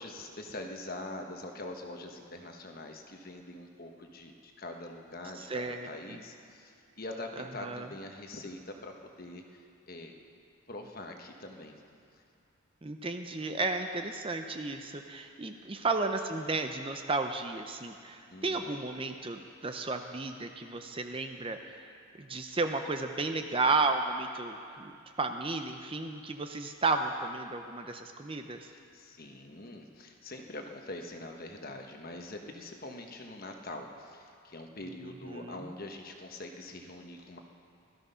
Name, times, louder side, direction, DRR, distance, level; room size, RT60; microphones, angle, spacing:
voice 1, 0.0-10.1 10.7-11.8 15.8-15.9 18.3-18.7 28.6-37.4, left 2 dB, 45° left, 3 dB, 1.2 m, -44 dB
voice 2, 5.5-5.9 7.6-7.9 12.8-21.8 22.2-28.7 35.3-35.6, right 3 dB, 25° right, 6 dB, 0.6 m, -33 dB
17.0 x 13.5 x 5.6 m, 2.4 s
head